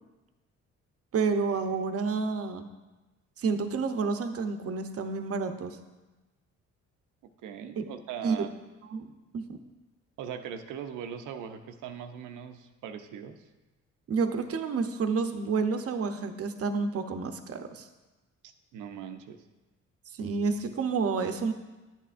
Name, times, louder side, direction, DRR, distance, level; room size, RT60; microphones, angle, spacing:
voice 1, 1.1-2.7 3.4-5.8 7.8-7.9 8.2-8.5 8.9-9.6 14.1-17.9 20.1-21.5, right 4 dB, 50° right, 7 dB, 0.8 m, -29 dB
voice 2, 7.4-8.5 10.2-13.5 18.7-19.4, right 8 dB, 85° right, 8 dB, 0.7 m, -40 dB
10.5 x 8.2 x 2.5 m, 1.1 s
cardioid pair, 90°, 30 cm